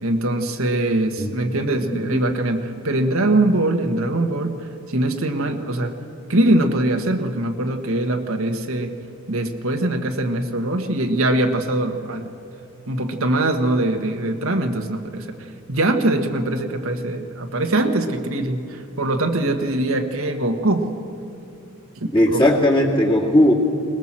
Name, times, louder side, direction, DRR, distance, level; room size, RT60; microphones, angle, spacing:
voice 1, 0.0-4.6 4.9-6.0 6.3-8.9 9.3-12.3 12.9-15.3 15.7-20.9 22.0-22.4, right 1 dB, 70° right, 5 dB, 1.5 m, -22 dB
voice 2, 22.1-23.5, left 1 dB, 20° left, -1 dB, 2.4 m, -17 dB
21.5 x 20.0 x 7.5 m, 2.6 s
head